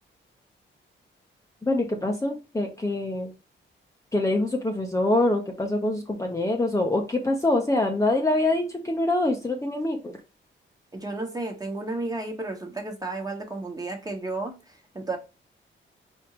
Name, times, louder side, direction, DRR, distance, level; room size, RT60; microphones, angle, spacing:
voice 1, 1.6-3.3 4.1-10.2, left 2 dB, 15° left, 0.9 m, -25 dB
voice 2, 10.9-15.2, right 2 dB, 20° right, 1.4 m, -33 dB
4.5 x 3.5 x 3.0 m
cardioid pair, 95°, 21 cm